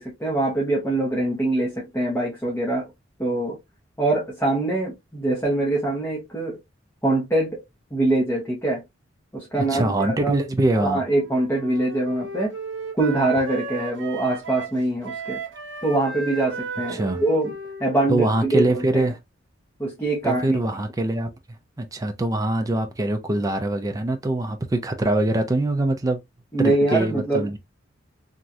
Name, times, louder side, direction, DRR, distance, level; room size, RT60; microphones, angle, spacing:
voice 1, 0.0-2.9 3.2-3.6 4.0-6.6 7.0-7.6 7.9-8.8 9.3-10.3 10.8-12.5 12.9-15.4 15.8-17.5 17.8-19.1 19.8-20.6 26.5-27.6, right 2 dB, 15° left, 1.0 m, -23 dB
voice 2, 9.6-11.0 16.9-17.2 18.1-19.2 20.2-21.3 21.8-26.2 26.6-27.6, right 2 dB, 20° right, 0.4 m, -23 dB
Wind instrument woodwind instrument, 11.0-19.0, right 3 dB, 70° right, 0.8 m, -35 dB
3.1 x 2.4 x 2.6 m
head